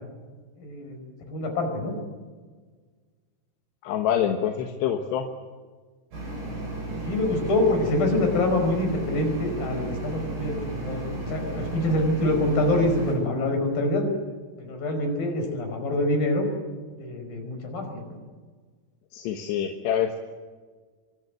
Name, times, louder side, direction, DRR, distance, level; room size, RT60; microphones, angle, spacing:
voice 1, 0.6-1.0 1.3-2.0 7.0-14.1 14.6-16.5 16.9-18.1, left 1 dB, 60° left, 5 dB, 6.9 m, -25 dB
voice 2, 3.8-5.3 19.1-20.2, left 9 dB, 85° left, 4 dB, 3.5 m, -26 dB
sound 1, 6.1-13.1, right 2 dB, 80° right, 10.0 m, -34 dB
25.0 x 24.5 x 7.9 m, 1.5 s
omnidirectional pair, 4.8 m